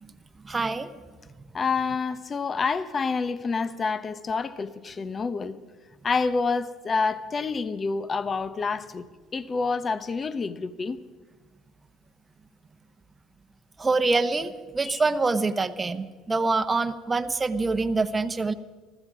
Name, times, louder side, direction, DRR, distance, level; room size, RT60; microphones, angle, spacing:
voice 1, 0.4-0.9 13.8-18.5, right 3 dB, 20° right, 1.0 m, -25 dB
voice 2, 1.5-5.6 6.0-9.1 9.3-11.0 14.8-15.0, left 4 dB, 35° left, 0.9 m, -28 dB
20.0 x 14.0 x 5.0 m
supercardioid pair, 80°, 0 cm